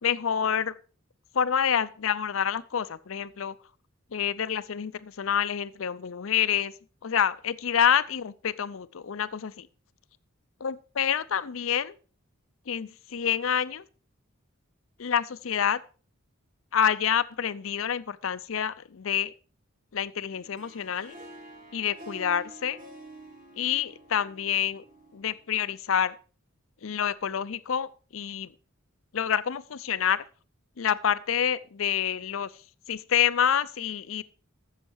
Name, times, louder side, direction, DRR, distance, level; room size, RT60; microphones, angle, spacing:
voice 1, 0.0-0.7 1.3-3.5 4.1-6.7 7.0-9.7 10.6-11.9 12.7-13.8 15.0-15.8 16.7-19.3 19.9-21.2 21.7-22.8 23.6-24.8 25.1-26.2 26.8-28.5 29.1-30.2 30.8-32.5 32.9-34.2, left 8 dB, 70° left, 0.5 m, -27 dB
Harp, 20.4-25.6, right 1 dB, 40° right, 1.8 m, -48 dB
13.0 x 7.2 x 4.7 m
head